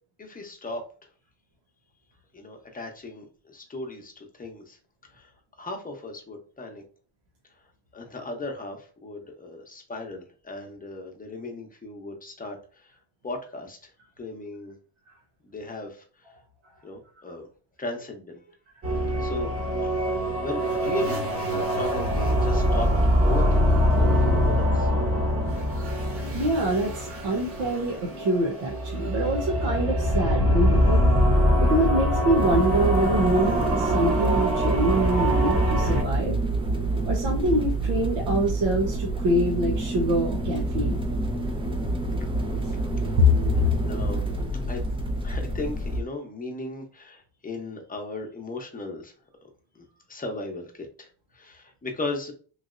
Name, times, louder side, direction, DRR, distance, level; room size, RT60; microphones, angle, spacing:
voice 1, 0.2-0.8 2.3-4.8 5.1-5.3 5.6-6.8 7.9-12.9 13.2-13.8 14.2-14.8 15.4-16.0 16.8-17.4 17.8-18.4 19.2-19.5 20.2-22.9 23.2-24.9 43.0-43.1 43.5-44.3 44.7-44.8 45.2-49.1 49.8-51.1 51.3-52.3, left 2 dB, 20° left, 3 dB, 0.8 m, -36 dB
sound 1, 18.8-36.0, equal, 30° right, 1.0 m, -24 dB
voice 2, 26.3-31.1 31.6-36.4 37.1-41.0 43.2-43.3, equal, 75° right, -2 dB, 0.9 m, -25 dB
sound 2, 32.3-46.0, right 2 dB, 10° right, 0.5 m, -27 dB
3.1 x 2.7 x 2.5 m, 0.39 s
cardioid pair, 100°, 46 cm